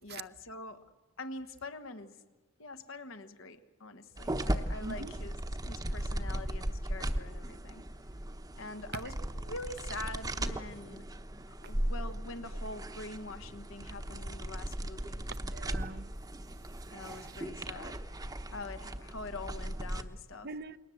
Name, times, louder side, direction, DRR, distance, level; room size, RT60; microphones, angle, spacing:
voice 1, 0.0-0.8 1.2-2.2 2.6-5.4 5.6-7.8 8.5-11.1 11.5-15.3 16.9-18.0 18.5-20.5, left 2 dB, 70° left, 1.4 m, -44 dB
sound 1, 4.2-20.0, right 1 dB, 20° right, 1.0 m, -37 dB
voice 2, 4.8-5.1 15.3-16.1 17.0-17.4 20.4-20.8, right 3 dB, 50° right, 0.8 m, -43 dB
28.5 x 21.0 x 7.8 m
head